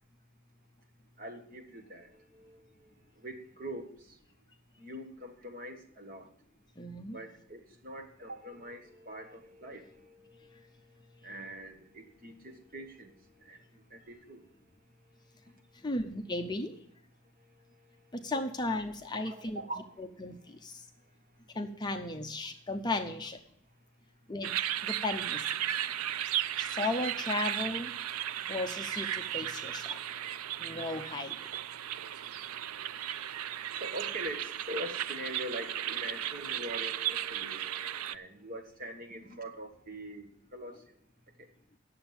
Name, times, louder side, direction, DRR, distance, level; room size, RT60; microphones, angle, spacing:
voice 1, 1.2-4.2 4.8-6.3 7.1-14.6 15.0-15.9 17.4-18.3 19.1-20.6 23.1-23.2 30.0-30.1 31.8-32.4 33.7-41.0 41.4-41.5, right 1 dB, 40° right, 5 dB, 1.3 m, -44 dB
voice 2, 6.8-7.2 15.8-16.7 18.1-19.6 20.2-20.8 21.6-23.4 24.3-24.5 24.8-25.4 26.6-27.9 28.5-30.0 30.6-31.3, left 2 dB, 20° left, 5 dB, 0.6 m, -35 dB
sound 1, 24.4-38.1, right 11 dB, 85° right, 0.4 m, -35 dB
9.4 x 7.0 x 7.2 m, 0.70 s
head